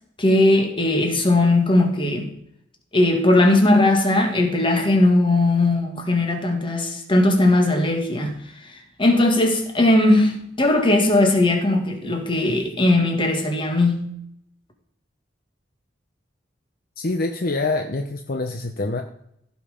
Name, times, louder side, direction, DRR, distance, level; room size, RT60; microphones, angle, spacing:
voice 1, 0.2-2.3 2.9-8.4 8.6-14.1, left 2 dB, 30° left, 1.9 m, -18 dB
voice 2, 17.0-19.0, left 2 dB, 55° left, 0.8 m, -25 dB
15.5 x 5.6 x 5.1 m
head